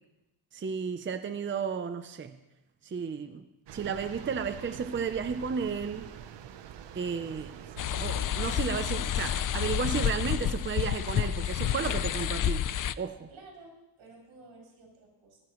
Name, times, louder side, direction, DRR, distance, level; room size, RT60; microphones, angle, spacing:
voice 1, 0.5-2.4 2.8-3.4 3.7-6.1 6.9-7.6 8.0-12.7 13.0-13.3, right 6 dB, 25° right, 9 dB, 0.6 m, -33 dB
sound 1, 3.7-9.0, right 9 dB, 65° right, 0.9 m, -45 dB
sound 2, 7.8-12.9, left 10 dB, 45° left, 0.5 m, -29 dB
voice 2, 13.3-15.4, right 3 dB, 80° right, -2 dB, 6.9 m, -53 dB
25.0 x 15.0 x 3.1 m, 0.96 s
wide cardioid pair, 155°, 46 cm